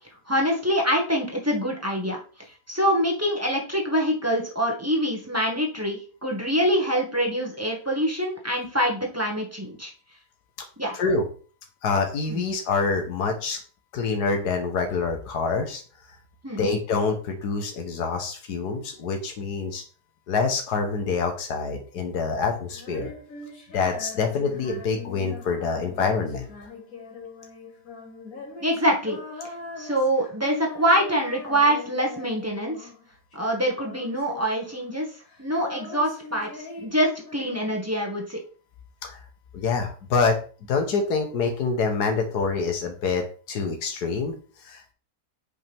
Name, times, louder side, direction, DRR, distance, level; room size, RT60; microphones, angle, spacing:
voice 1, 0.3-2.2 2.7-9.9 10.8-10.9 12.3-12.4 16.4-16.7 28.6-29.2 29.8-32.9 33.3-35.1 35.4-38.4, equal, 10° right, -1 dB, 1.7 m, -25 dB
voice 2, 10.9-11.3 11.8-13.6 13.9-15.8 16.6-19.8 20.3-23.1 23.7-26.5 39.0-39.2 39.5-40.4 40.7-44.4 44.6-44.9, left 4 dB, 90° left, 4 dB, 1.7 m, -26 dB
Female singing, 22.7-33.0 33.3-35.0 35.3-37.9, left 3 dB, 60° left, 2.8 m, -41 dB
8.7 x 5.4 x 3.5 m, 0.39 s
omnidirectional pair, 1.7 m